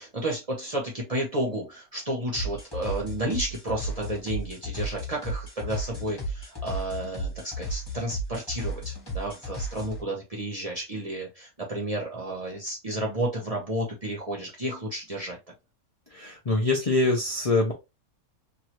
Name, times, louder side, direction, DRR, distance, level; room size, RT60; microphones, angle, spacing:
voice 1, 0.0-15.4, right 1 dB, 30° right, 0.8 m, -32 dB
sound 1, 2.3-10.0, equal, 20° left, 1.1 m, -34 dB
voice 2, 16.1-17.7, left 2 dB, 40° left, 0.5 m, -24 dB
3.1 x 2.4 x 2.9 m
omnidirectional pair, 1.6 m